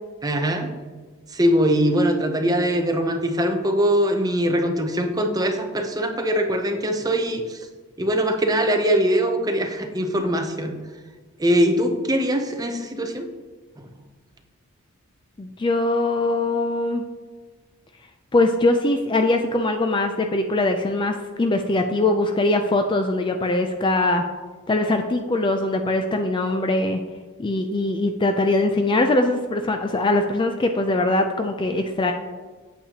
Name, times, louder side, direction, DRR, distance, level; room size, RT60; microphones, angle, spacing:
voice 1, 0.2-0.7 1.3-7.7 8.0-10.8 11.4-13.3, equal, 15° right, 5 dB, 0.6 m, -22 dB
voice 2, 15.4-17.0 18.3-24.2 24.7-27.0 27.4-32.1, left 2 dB, 20° left, 6 dB, 0.3 m, -22 dB
8.3 x 8.3 x 2.9 m, 1.4 s
head